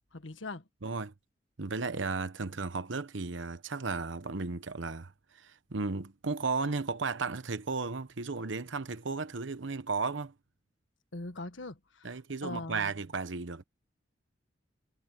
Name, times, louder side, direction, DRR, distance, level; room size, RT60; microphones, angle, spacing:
voice 1, 0.1-0.6 11.1-12.1 12.4-12.9, left 2 dB, 80° left, 1.5 m, -41 dB
voice 2, 0.8-1.1 1.6-10.3 12.0-13.6, right 4 dB, 80° right, 1.0 m, -34 dB
head